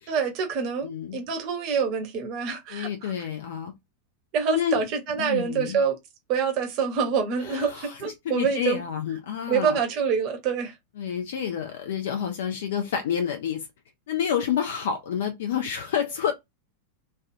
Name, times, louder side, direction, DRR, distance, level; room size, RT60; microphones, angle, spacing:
voice 1, 0.1-3.1 4.3-6.0 6.3-8.8 9.5-10.7, right 6 dB, 40° right, 1.0 m, -26 dB
voice 2, 0.8-1.2 2.7-3.7 4.5-4.8 5.2-5.8 7.4-9.8 11.0-13.7 14.1-16.3, left 8 dB, 55° left, 0.5 m, -29 dB
3.2 x 2.3 x 2.6 m
figure-of-eight pair, 90°, 0 cm